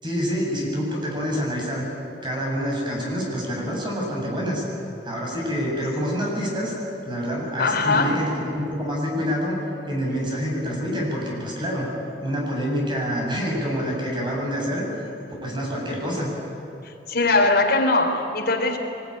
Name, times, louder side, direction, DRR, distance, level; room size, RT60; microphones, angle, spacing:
voice 1, 0.0-1.8 2.2-4.6 5.0-6.7 7.1-9.6 9.9-11.9 12.2-14.9 15.4-16.3, equal, 25° right, -2 dB, 7.1 m, -27 dB
voice 2, 7.6-8.2 16.8-18.8, left 3 dB, 60° left, 2 dB, 3.7 m, -21 dB
23.0 x 21.0 x 10.0 m, 3.0 s
head